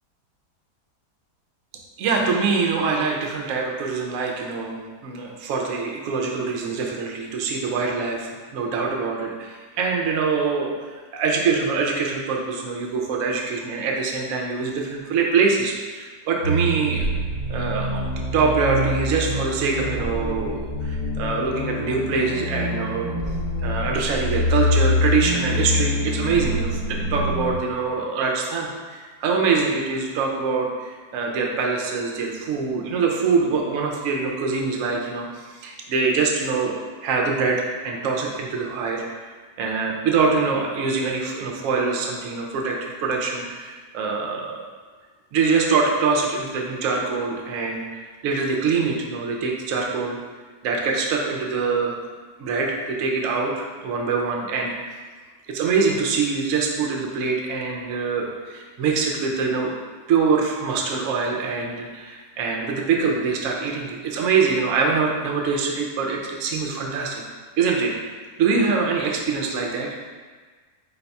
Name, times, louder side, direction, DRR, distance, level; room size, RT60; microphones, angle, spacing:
voice 1, 2.0-17.1 17.5-18.0 18.3-23.1 23.6-36.7 37.0-39.0 39.6-44.6 45.3-47.9 48.2-50.2 50.6-52.0 52.4-54.7 55.5-59.7 60.1-67.2 67.6-67.9 68.4-69.9, right 4 dB, 70° right, 0 dB, 0.8 m, -24 dB
sound 1, 16.4-27.6, left 1 dB, 35° left, 0.7 m, -25 dB
4.1 x 2.3 x 4.0 m, 1.4 s
omnidirectional pair, 1.7 m